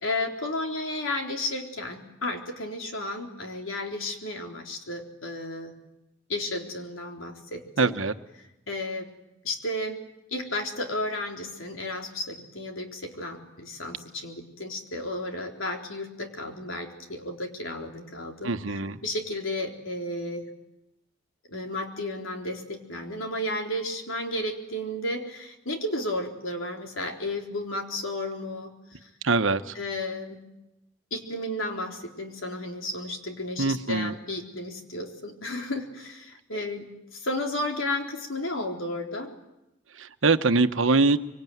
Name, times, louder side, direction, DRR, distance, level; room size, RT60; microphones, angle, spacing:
voice 1, 0.0-5.8 6.3-7.9 8.7-9.1 9.4-10.0 10.3-18.5 19.0-20.4 21.5-29.1 29.7-30.4 31.1-39.3, left 1 dB, 90° left, 2 dB, 3.9 m, -33 dB
voice 2, 7.8-8.1 18.4-19.0 29.2-29.7 33.6-34.1 40.0-41.2, right 3 dB, 80° right, 9 dB, 1.2 m, -23 dB
25.0 x 24.5 x 9.4 m, 0.92 s
head